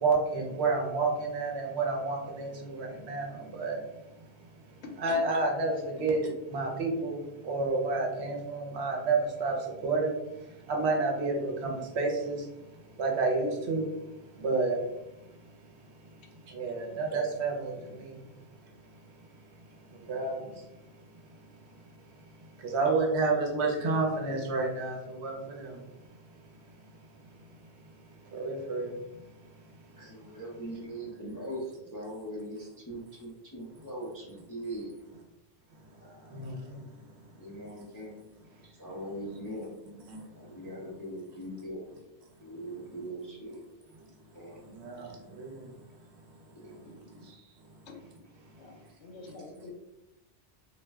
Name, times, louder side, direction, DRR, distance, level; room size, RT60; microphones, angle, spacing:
voice 1, 0.0-3.3 3.5-3.8 5.0-7.2 7.4-9.5 9.8-10.1 10.7-11.7 12.0-12.4 13.0-13.8 14.4-14.7 16.5-17.7 20.1-20.3 22.7-25.7 28.3-28.9 36.3-36.5 44.8-45.1 45.4-45.5, right 3 dB, 70° right, 1 dB, 0.9 m, -29 dB
voice 2, 30.0-34.9 35.9-36.6 37.3-38.3 38.8-39.7 40.4-41.9 42.4-43.6 44.3-44.8 46.5-46.9, right 1 dB, 30° left, -5 dB, 0.3 m, -41 dB
voice 3, 48.5-49.7, left 3 dB, 75° left, 2 dB, 0.8 m, -47 dB
2.4 x 2.1 x 3.3 m, 0.94 s
omnidirectional pair, 1.2 m